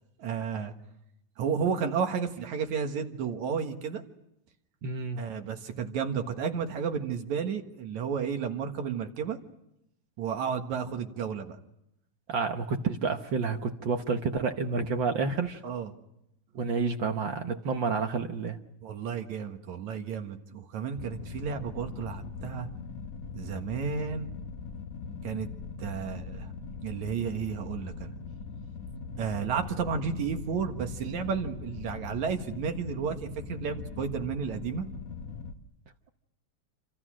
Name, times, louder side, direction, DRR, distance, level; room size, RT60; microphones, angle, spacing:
voice 1, 0.2-0.7 1.4-4.0 5.2-9.4 10.2-11.6 15.6-15.9 18.8-22.7 23.4-24.3 25.2-25.5 25.8-26.5 26.8-28.1 29.2-34.9, right 6 dB, 75° right, 5 dB, 2.9 m, -32 dB
voice 2, 4.8-5.2 12.3-15.6 16.5-18.6, right 4 dB, 60° right, 5 dB, 1.3 m, -29 dB
sound 1, 21.0-35.5, left 5 dB, 65° left, 2.6 m, -41 dB
28.0 x 27.0 x 6.3 m, 0.83 s
omnidirectional pair, 3.3 m